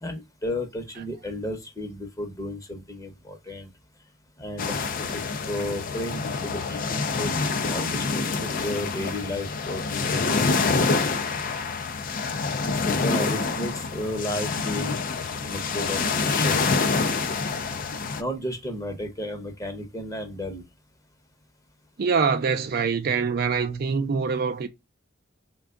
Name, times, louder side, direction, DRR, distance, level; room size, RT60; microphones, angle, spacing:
voice 1, 0.0-3.7 4.4-7.3 7.6-11.1 12.6-15.0 15.5-16.6 18.2-20.6, left 1 dB, 15° left, 0.9 m, -33 dB
sound 1, 4.6-18.2, left 4 dB, 45° left, 0.4 m, -26 dB
voice 2, 22.0-24.7, right 5 dB, 50° right, 0.4 m, -24 dB
3.5 x 2.3 x 3.5 m
head